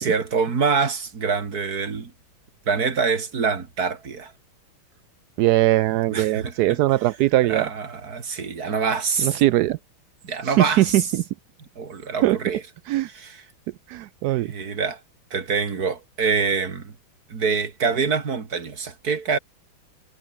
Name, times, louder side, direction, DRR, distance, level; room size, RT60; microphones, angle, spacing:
voice 1, 0.0-2.1 2.7-4.3 6.1-6.8 7.5-9.4 10.2-11.1 11.8-12.6 13.1-13.5 14.4-15.0 15.3-16.9 17.3-19.4, right 5 dB, 45° right, 2.7 m, -25 dB
voice 2, 5.4-7.7 9.2-9.8 10.6-11.2 12.2-12.4 12.9-13.1 13.9-14.5, right 15 dB, 90° right, 0.8 m, -20 dB
omnidirectional pair, 2.3 m